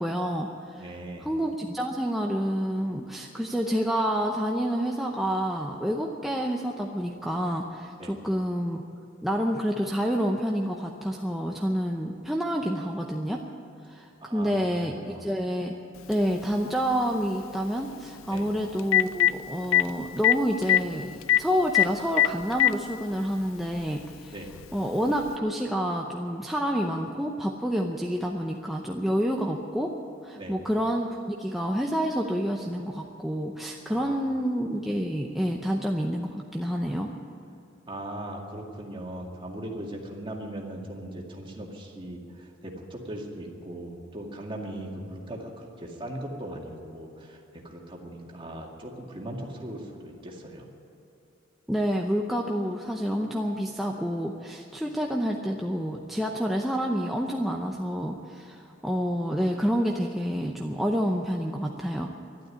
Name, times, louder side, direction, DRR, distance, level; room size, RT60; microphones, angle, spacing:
voice 1, 0.0-0.9 1.2-8.8 9.2-13.4 13.9-15.8 16.1-24.3 24.7-29.9 30.2-37.1 51.7-62.1, equal, ahead, 0 dB, 0.7 m, -28 dB
voice 2, 0.8-1.3 8.0-8.1 14.2-15.3 18.3-18.5 24.3-24.5 30.4-30.6 33.9-34.3 37.9-50.7, right 1 dB, 25° right, 0 dB, 2.2 m, -39 dB
Telephone, 16.1-16.2 18.4-18.5 18.8-19.3 19.7-19.8 20.2-20.3 20.6-20.8 21.3-21.4 21.7-21.9 22.2-22.7 23.7-23.8 25.3-25.4, left 13 dB, 75° left, 0.4 m, -19 dB
12.0 x 12.0 x 9.7 m, 2.8 s
head